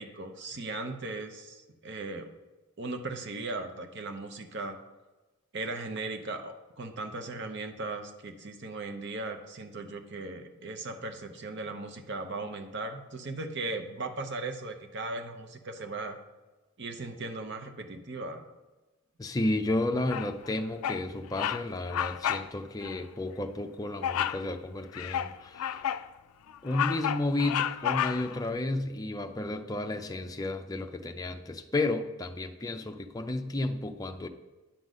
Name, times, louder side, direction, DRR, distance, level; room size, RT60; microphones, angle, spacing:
voice 1, 0.0-2.3 2.8-4.8 5.5-16.2 16.8-18.5, right 2 dB, 55° right, 7 dB, 0.8 m, -38 dB
voice 2, 19.2-25.8 26.6-34.3, left 2 dB, 15° left, 6 dB, 0.5 m, -32 dB
Bird vocalization bird call bird song, 20.1-20.5 20.8-21.1 21.3-21.6 21.9-22.5 22.8-23.0 24.0-24.4 24.9-26.1 26.5-28.4, left 10 dB, 85° left, 0.3 m, -31 dB
10.0 x 3.9 x 6.2 m, 1.2 s
head